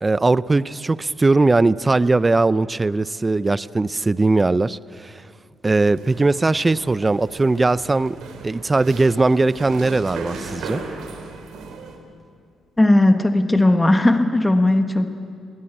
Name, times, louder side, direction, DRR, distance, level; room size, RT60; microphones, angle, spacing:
voice 1, 0.0-5.2 5.6-8.2 8.4-10.8, right 3 dB, 20° right, 18 dB, 0.5 m, -19 dB
sound 1, 5.8-12.0, right 4 dB, 80° right, 3.3 m, -36 dB
voice 2, 12.8-15.1, left 1 dB, 15° left, 7 dB, 1.3 m, -16 dB
22.0 x 17.0 x 8.8 m, 2.3 s
cardioid pair, 90°, 0 cm